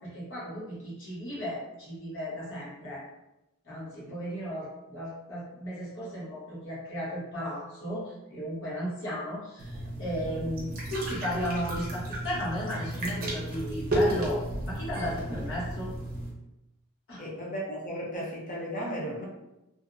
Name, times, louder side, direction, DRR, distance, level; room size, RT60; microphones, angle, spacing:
voice 1, 0.0-3.0 3.6-15.9 17.1-17.2, equal, 60° left, -7 dB, 1.1 m, -35 dB
sound 1, 9.6-16.3, right 1 dB, 45° right, 0.6 m, -32 dB
voice 2, 17.2-19.2, equal, 35° left, -4 dB, 0.7 m, -35 dB
2.6 x 2.1 x 2.4 m, 0.94 s
head